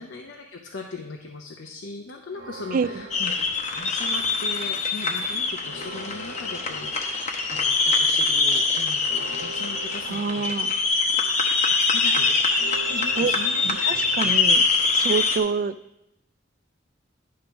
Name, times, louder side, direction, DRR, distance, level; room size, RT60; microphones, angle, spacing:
voice 1, 0.0-3.3 3.7-10.5 11.4-12.4 12.9-13.6 13.9-14.1, left 3 dB, 70° left, 2 dB, 0.7 m, -39 dB
Church bell, 2.3-4.7 5.0-5.1 5.4-15.5, right 2 dB, 75° right, 1.3 m, -44 dB
voice 2, 2.7-3.1 10.1-10.7 13.2-13.3 13.6-14.6 14.9-15.8, right 5 dB, 45° right, 15 dB, 0.3 m, -26 dB
sound 1, 3.1-15.4, left 4 dB, 35° left, 1.0 m, -24 dB
10.5 x 3.8 x 5.7 m, 0.89 s
head